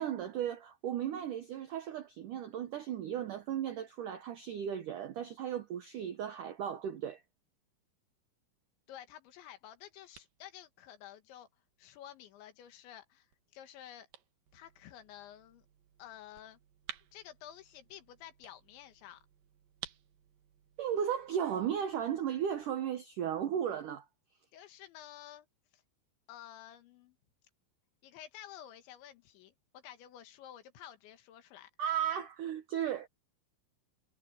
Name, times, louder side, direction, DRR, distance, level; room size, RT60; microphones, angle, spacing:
voice 1, 0.0-7.2 20.8-24.1 31.8-33.1, right 9 dB, 80° right, 1.8 m, -35 dB
voice 2, 8.9-11.5 11.8-13.3 13.5-14.1 14.5-15.7 16.0-16.6 17.1-19.2 24.5-25.5 25.7-25.8 26.3-27.2 28.0-31.7, left 11 dB, 75° left, 3.8 m, -51 dB
sound 1, 9.3-22.8, right 11 dB, 65° right, 2.5 m, -56 dB
omnidirectional pair, 5.4 m